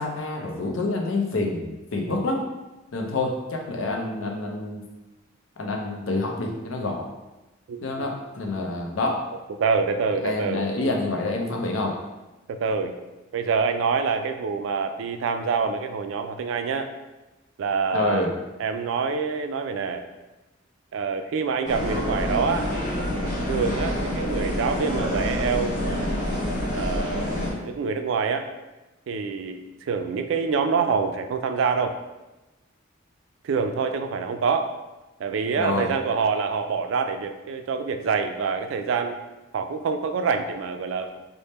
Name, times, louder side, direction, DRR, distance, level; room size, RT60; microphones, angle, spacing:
voice 1, 0.0-2.4 2.9-4.8 5.6-7.1 7.8-9.2 10.2-12.0 17.9-18.3 35.6-35.9, left 2 dB, 75° left, 1 dB, 0.6 m, -27 dB
voice 2, 7.7-8.1 9.6-10.6 12.5-12.9 13.3-16.9 17.6-18.3 18.6-20.0 20.9-22.7 23.1-26.1 26.7-28.5 29.1-32.0 33.4-34.7 35.2-39.2 39.5-41.1, right 5 dB, 65° right, 7 dB, 0.3 m, -26 dB
sound 1, 21.6-27.5, left 1 dB, 40° left, 1.2 m, -27 dB
3.4 x 2.1 x 4.1 m, 1.1 s
head